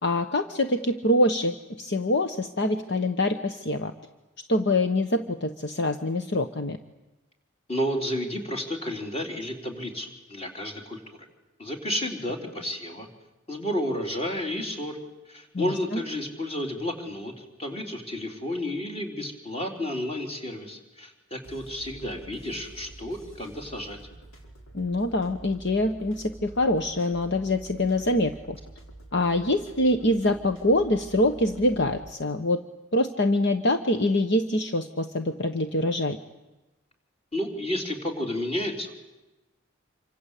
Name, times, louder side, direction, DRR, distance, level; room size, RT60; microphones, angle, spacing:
voice 1, 0.0-3.9 4.5-6.8 15.5-16.0 24.7-28.6 29.1-32.6 32.9-36.2, left 1 dB, 55° left, 7 dB, 1.2 m, -25 dB
voice 2, 7.7-11.3 11.6-13.1 13.5-15.0 15.3-24.0 37.3-39.0, left 1 dB, 30° left, 2 dB, 4.0 m, -31 dB
sound 1, 21.4-32.1, right 2 dB, 80° left, 5.0 m, -47 dB
27.5 x 25.0 x 8.5 m, 1.0 s
head